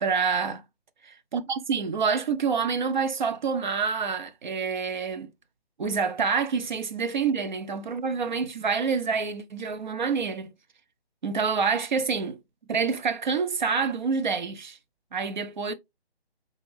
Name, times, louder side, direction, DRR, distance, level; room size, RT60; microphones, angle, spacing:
voice 1, 0.0-0.6 1.3-5.3 5.8-10.5 11.2-12.4 12.7-14.8 15.1-15.7, right 5 dB, 45° right, 0.5 m, -27 dB
3.6 x 2.5 x 3.1 m
figure-of-eight pair, 145°, 32 cm